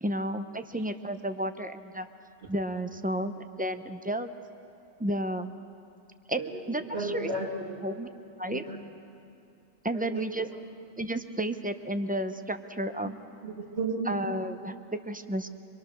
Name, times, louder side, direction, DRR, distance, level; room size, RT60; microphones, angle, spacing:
voice 1, 0.0-2.1 2.5-4.3 5.0-5.5 6.3-6.4 6.7-7.3 7.8-8.1 8.4-8.6 9.8-10.5 11.0-13.1 14.1-15.5, right 1 dB, 10° right, 7 dB, 0.4 m, -32 dB
voice 2, 6.4-7.9 8.5-8.8 9.9-10.6 13.0-13.1 13.4-14.2, right 3 dB, 60° right, 1 dB, 2.3 m, -35 dB
26.0 x 22.5 x 6.3 m, 2.5 s
omnidirectional pair, 1.3 m